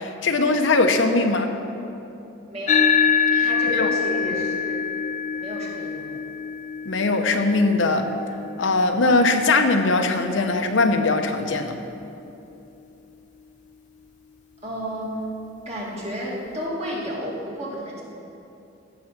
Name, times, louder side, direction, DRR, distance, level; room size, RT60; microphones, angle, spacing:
voice 1, 0.0-1.5 3.3-3.5 3.8-3.9 6.8-8.1 8.6-11.8, left 3 dB, 70° left, 5 dB, 0.8 m, -20 dB
voice 2, 2.5-2.8 3.4-4.9 5.4-6.1 14.6-15.1 15.7-18.0, equal, 35° right, -5 dB, 2.3 m, -31 dB
sound 1, 2.7-11.4, left 6 dB, 40° left, 0.6 m, -26 dB
15.0 x 6.1 x 6.0 m, 2.8 s
head